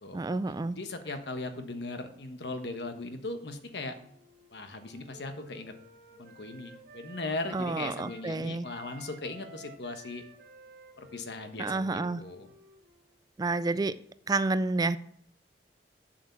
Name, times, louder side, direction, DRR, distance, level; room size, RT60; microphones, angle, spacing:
voice 1, 0.1-0.8 7.5-8.6 11.6-12.2 13.4-14.0 14.3-15.0, right 3 dB, 20° right, 0.3 m, -29 dB
voice 2, 0.7-4.0 4.5-5.7 6.2-10.2 11.0-12.5, left 2 dB, 70° left, 1.3 m, -38 dB
Wind instrument woodwind instrument, 3.9-8.3 8.6-13.1, right 2 dB, 60° right, 1.3 m, -52 dB
7.3 x 7.0 x 7.3 m
head